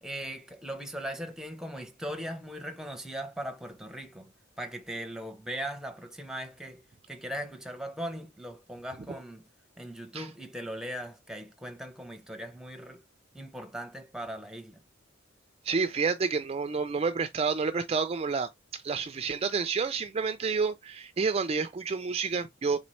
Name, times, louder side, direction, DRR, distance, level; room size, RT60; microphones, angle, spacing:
voice 1, 0.0-9.4 9.8-13.0 13.3-14.8, equal, 5° right, 0.7 m, -39 dB
voice 2, 15.6-22.8, right 5 dB, 30° right, 0.3 m, -29 dB
4.0 x 3.8 x 3.1 m
head